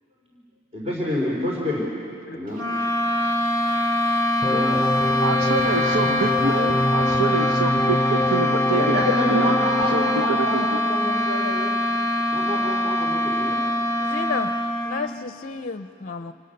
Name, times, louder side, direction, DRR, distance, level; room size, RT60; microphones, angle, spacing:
voice 1, 0.7-1.8 2.3-2.6 4.5-4.7 8.7-11.7 12.3-13.6, left 1 dB, 30° right, -3 dB, 4.0 m, -27 dB
sound 1, 2.5-15.2, left 1 dB, 60° right, 2.5 m, -23 dB
sound 2, 4.4-10.3, left 2 dB, 10° left, 2.8 m, -25 dB
voice 2, 5.2-9.0 9.3-9.6 9.8-10.8, right 4 dB, 85° right, 6 dB, 0.8 m, -27 dB
voice 3, 14.0-14.5 14.8-16.3, left 4 dB, 40° left, 9 dB, 0.6 m, -31 dB
27.0 x 27.0 x 6.7 m, 2.5 s
head